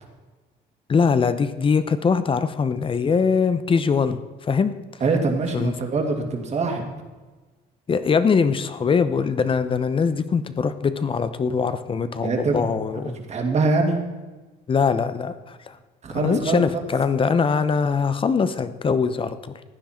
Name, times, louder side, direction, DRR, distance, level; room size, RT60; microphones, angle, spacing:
voice 1, 0.9-4.2 4.5-4.7 5.5-5.7 7.9-13.1 14.7-15.6 16.1-19.4, left 5 dB, 30° left, 12 dB, 0.8 m, -22 dB
voice 2, 5.0-6.8 12.2-12.6 13.3-14.0 16.0-16.6, right 3 dB, 40° right, 3 dB, 2.4 m, -23 dB
15.0 x 10.0 x 4.4 m, 1.3 s
cardioid pair, 110°, 17 cm